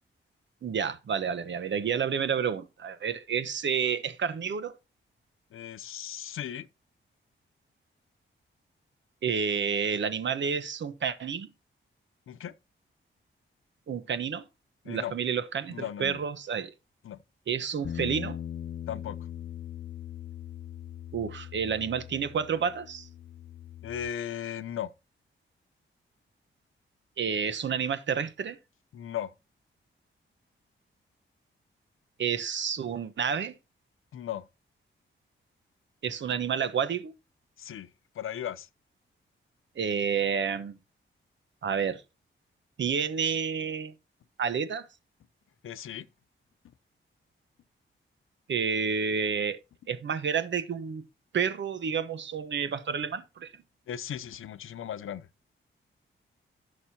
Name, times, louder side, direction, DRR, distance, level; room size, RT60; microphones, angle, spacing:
voice 1, 0.6-4.7 9.2-11.5 13.9-14.4 14.9-16.7 17.5-18.4 21.1-23.1 27.2-28.6 32.2-33.6 36.0-37.1 39.8-40.8 41.6-42.0 42.8-43.9 44.4-44.9 48.5-49.6 49.9-51.0 51.3-53.5, right 7 dB, 65° right, 1.1 m, -30 dB
voice 2, 5.5-6.7 12.3-12.5 14.8-15.1 15.7-16.2 17.0-17.2 18.9-19.2 23.8-24.9 28.9-29.3 34.1-34.5 37.6-37.9 38.2-38.7 45.6-46.1 53.9-55.3, left 10 dB, 80° left, 0.8 m, -36 dB
Bass guitar, 17.8-24.1, left 10 dB, 45° left, 0.4 m, -40 dB
16.0 x 6.5 x 2.9 m
wide cardioid pair, 135°, 21 cm